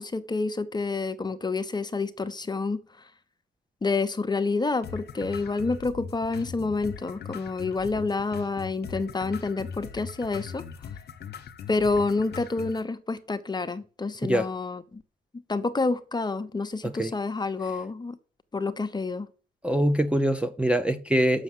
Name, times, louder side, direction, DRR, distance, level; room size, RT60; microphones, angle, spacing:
voice 1, 0.0-2.8 3.8-10.6 11.7-15.0 15.5-18.2 18.5-19.3, left 3 dB, 20° left, 0.9 m, -28 dB
sound 1, 4.8-12.8, left 7 dB, 55° left, 1.1 m, -40 dB
voice 2, 16.8-17.1 19.6-21.4, right 1 dB, 5° right, 0.7 m, -24 dB
7.1 x 6.4 x 7.9 m
cardioid pair, 90°, 20 cm